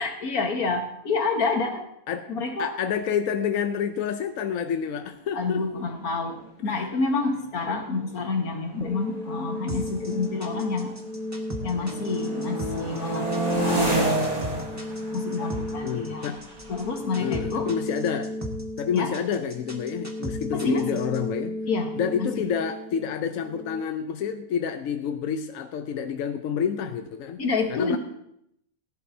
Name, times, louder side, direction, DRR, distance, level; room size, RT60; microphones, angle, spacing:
voice 1, 0.0-1.9 2.3-2.7 5.3-10.9 11.6-13.9 15.1-16.3 16.7-17.7 18.9-19.1 20.6-21.0 21.7-22.5 27.4-28.0, left 4 dB, 85° left, 3 dB, 1.9 m, -28 dB
voice 2, 2.6-5.6 6.7-6.9 15.8-16.4 17.2-18.3 18.8-21.6 22.0-27.4 27.7-28.0, left 7 dB, 70° left, 7 dB, 1.0 m, -28 dB
sound 1, 5.8-5.9 6.1-6.5 7.2-11.2 11.5-18.2, right 1 dB, 25° right, 2.0 m, -31 dB
sound 2, 8.8-23.8, left 1 dB, 5° left, 0.8 m, -35 dB
sound 3, 9.7-21.2, right 1 dB, 10° right, 1.4 m, -38 dB
18.0 x 11.0 x 2.7 m, 0.77 s
omnidirectional pair, 1.5 m